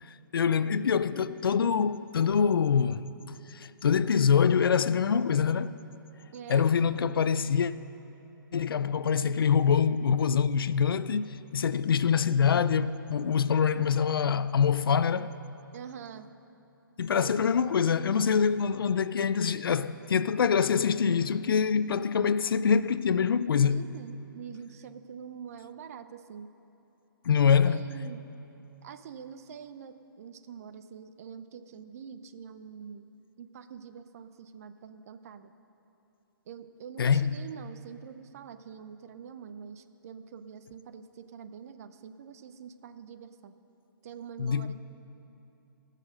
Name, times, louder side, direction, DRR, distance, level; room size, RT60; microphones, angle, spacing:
voice 1, 0.3-3.0 3.5-5.7 6.5-7.7 8.5-15.3 17.0-23.8 27.2-27.8 37.0-37.4 44.4-44.7, left 7 dB, 80° left, 0.4 m, -25 dB
voice 2, 6.3-6.7 15.7-16.3 17.1-17.3 23.7-26.5 27.5-28.2 28.8-33.1 33.4-35.5 36.5-43.6 44.0-44.7, right 7 dB, 45° right, 0.5 m, -45 dB
17.5 x 6.6 x 6.3 m
hypercardioid pair, 150°, 12 cm